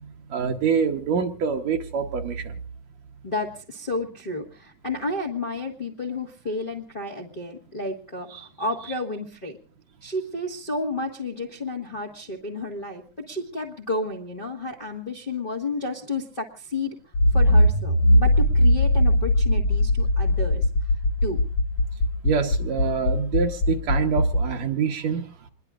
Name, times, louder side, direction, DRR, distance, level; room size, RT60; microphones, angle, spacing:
voice 1, 0.3-2.5 8.3-8.5 22.2-25.5, right 6 dB, 70° right, 3 dB, 2.2 m, -26 dB
voice 2, 3.2-9.6 10.0-17.0 17.3-20.9 21.2-21.4, left 2 dB, 30° left, -1 dB, 1.0 m, -31 dB
Accelerating revving vroom, 17.1-24.4, left 1 dB, 65° left, 3.0 m, -20 dB
27.0 x 21.5 x 2.4 m, 0.36 s
omnidirectional pair, 3.4 m